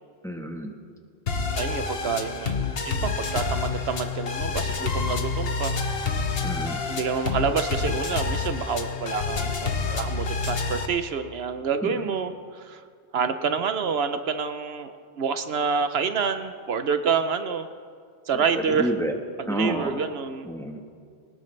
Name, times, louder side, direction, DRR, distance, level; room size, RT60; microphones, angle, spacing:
voice 1, 0.2-0.7 6.4-6.8 11.8-12.1 18.3-19.1 19.5-20.0 20.4-20.8, equal, 5° left, 2 dB, 1.2 m, -30 dB
sound 1, 1.3-10.9, left 4 dB, 65° left, 1.3 m, -28 dB
voice 2, 1.5-2.5 2.8-5.7 6.9-12.8 13.1-17.6 18.3-18.9 19.4-20.5, right 6 dB, 75° right, 9 dB, 1.0 m, -28 dB
21.5 x 19.5 x 3.3 m, 2.1 s
omnidirectional pair, 1.1 m